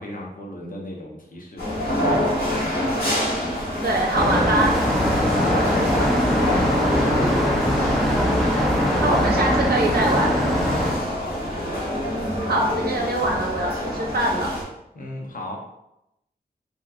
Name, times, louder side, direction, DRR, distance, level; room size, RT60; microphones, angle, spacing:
voice 1, 0.0-3.1 5.0-7.8 8.6-9.5 10.7-11.5 14.9-15.6, left 1 dB, 60° left, -1 dB, 0.7 m, -35 dB
sound 1, 1.6-14.6, left 1 dB, 75° left, 1.0 m, -27 dB
voice 2, 3.8-4.7 7.9-8.5 9.0-10.3 12.1-14.5, right 1 dB, 70° right, -1 dB, 0.7 m, -24 dB
sound 2, 4.1-10.9, equal, ahead, 0.7 m, -21 dB
3.2 x 2.9 x 2.4 m, 0.84 s
wide cardioid pair, 110°, 16 cm